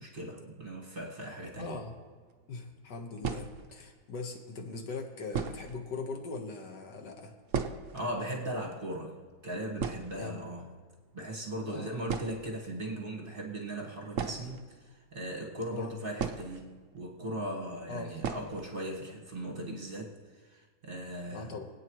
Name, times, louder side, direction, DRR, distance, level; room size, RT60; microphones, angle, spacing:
voice 1, 0.0-1.8 7.9-9.2 9.4-10.7 11.1-21.6, right 1 dB, 30° right, -1 dB, 1.5 m, -38 dB
voice 2, 1.6-1.9 2.5-7.3 10.2-10.5 11.7-11.9 15.7-16.0 17.9-18.1 21.3-21.7, left 3 dB, 60° left, 3 dB, 1.9 m, -40 dB
sound 1, 2.2-2.3 3.2-3.9 4.7-4.8 5.3-5.8 6.1-6.2 6.5-6.6 7.0-8.1 8.4-8.5 8.7-9.0 9.4-9.5 9.8-10.7 11.6-11.7 12.0-12.6 14.1-15.2 16.2-17.0 17.3-17.4 18.2-18.7 19.0-19.1 19.4-19.5 20.0-20.3, right 6 dB, 65° right, 0.7 m, -36 dB
25.0 x 9.0 x 3.1 m, 1.5 s
omnidirectional pair, 2.2 m